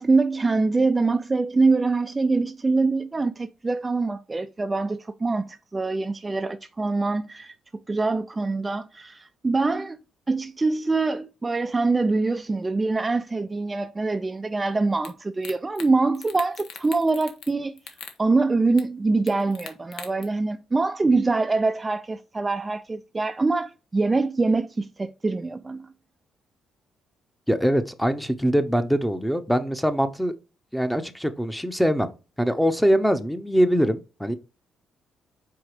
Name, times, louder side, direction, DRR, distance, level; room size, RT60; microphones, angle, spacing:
voice 1, 0.0-7.5 7.9-10.0 10.3-17.8 18.2-25.9, right 3 dB, 20° right, 0.4 m, -24 dB
sound 1, 15.0-15.1 15.4-15.9 16.1-17.5 17.8-18.2 18.8-18.9 19.3-20.2, left 7 dB, 80° left, 1.1 m, -40 dB
voice 2, 27.5-30.4 30.7-32.1 32.4-34.3, equal, ahead, 0.8 m, -23 dB
4.7 x 4.2 x 4.9 m
cardioid pair, 90°, 0 cm